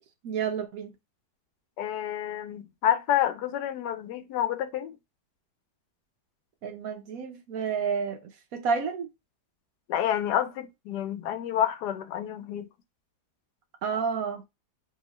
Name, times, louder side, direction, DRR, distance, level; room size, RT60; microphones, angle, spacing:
voice 1, 0.2-0.9 6.6-8.2 8.5-9.1 13.8-14.4, right 6 dB, 65° right, 1.0 m, -30 dB
voice 2, 1.8-4.9 9.9-12.7, left 10 dB, 80° left, 1.2 m, -29 dB
3.8 x 2.9 x 3.0 m
omnidirectional pair, 1.7 m